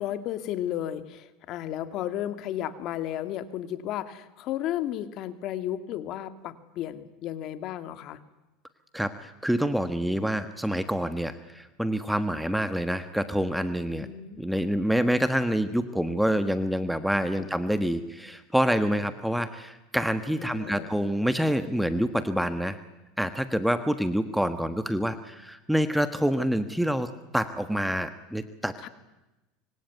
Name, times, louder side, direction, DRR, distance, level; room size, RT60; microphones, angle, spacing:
voice 1, 0.0-8.2 14.0-14.4 17.3-17.5 20.4-20.9 28.8-28.9, left 12 dB, 50° left, 11 dB, 2.0 m, -33 dB
voice 2, 8.9-14.1 14.4-22.8 23.2-28.7, equal, ahead, 10 dB, 1.4 m, -27 dB
25.0 x 24.5 x 9.4 m, 1.0 s
supercardioid pair, 125°, 0 cm